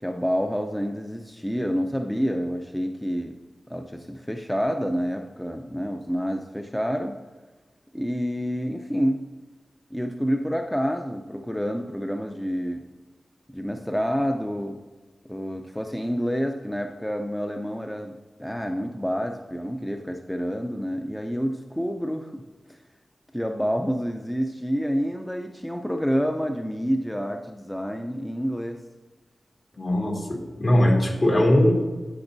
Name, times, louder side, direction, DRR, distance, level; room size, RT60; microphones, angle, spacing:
voice 1, 0.0-3.4 3.7-7.2 7.9-9.2 9.9-12.8 13.5-14.8 15.3-18.1 18.4-22.4 22.7-22.8 23.3-28.8, equal, 5° left, 3 dB, 0.5 m, -28 dB
voice 2, 29.8-31.7, left 1 dB, 55° left, -1 dB, 2.1 m, -20 dB
14.5 x 5.2 x 2.7 m, 1.3 s
wide cardioid pair, 85°, 0 cm